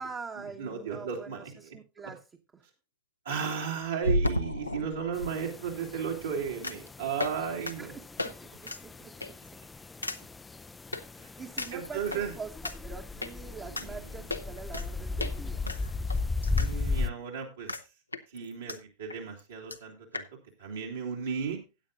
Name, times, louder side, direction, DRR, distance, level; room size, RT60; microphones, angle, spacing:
voice 1, 0.0-2.2 2.5-2.7 7.8-9.3 11.4-15.6, right 5 dB, 20° right, 3 dB, 1.0 m, -44 dB
voice 2, 0.6-1.7 3.2-8.0 11.2-11.3 11.7-12.3 13.7-14.2 16.5-17.7 18.3-20.2 20.6-21.6, right 7 dB, 70° right, -2 dB, 2.6 m, -35 dB
sound 1, 1.5-1.6 4.0-5.3 6.6-6.9 7.2-7.4 7.7-7.8 8.2-8.3 8.6-8.8 9.2-9.5 10.0-10.2 10.9-11.0 11.6-12.2 12.6-12.7 13.2-13.3 13.8-13.9 14.3-14.9 15.2-15.3 15.7-16.7 17.0-17.1 17.7-17.8 18.1-18.8 19.1-19.2 19.4-19.5 19.7-19.8 20.1-20.3, left 1 dB, 85° left, 0.8 m, -32 dB
sound 2, 5.1-17.1, left 3 dB, 10° left, 0.4 m, -36 dB
16.0 x 9.0 x 2.5 m, 0.28 s
figure-of-eight pair, 90°, 0 cm